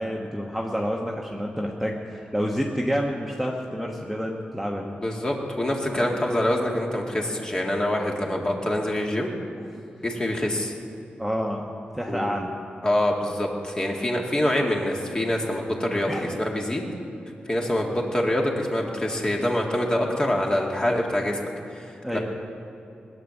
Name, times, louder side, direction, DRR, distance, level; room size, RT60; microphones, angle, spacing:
voice 1, 0.0-4.9 6.0-6.2 11.2-11.6 11.9-12.5 16.1-16.4 22.0-22.2, equal, ahead, -1 dB, 1.2 m, -28 dB
voice 2, 5.0-9.3 10.0-10.7 12.1-12.3 12.8-16.8 17.5-21.4 21.7-22.2, left 1 dB, 25° left, -1 dB, 2.3 m, -25 dB
20.0 x 9.4 x 7.2 m, 2.8 s
wide cardioid pair, 110°, 3 cm